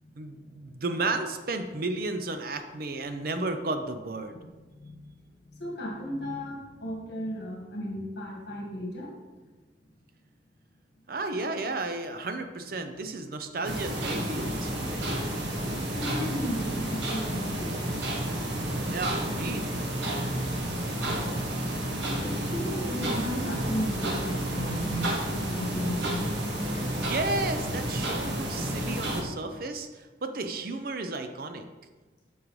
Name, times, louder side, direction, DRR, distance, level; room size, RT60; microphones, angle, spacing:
voice 1, 0.2-4.4 11.1-15.0 18.9-19.7 27.0-31.7, right 2 dB, 50° right, 7 dB, 0.5 m, -33 dB
voice 2, 5.4-9.1 15.9-17.8 22.1-26.3, equal, 70° left, -1 dB, 1.4 m, -35 dB
sound 1, 13.6-29.2, right 1 dB, 80° right, 1.3 m, -31 dB
8.7 x 6.3 x 3.1 m, 1.2 s
head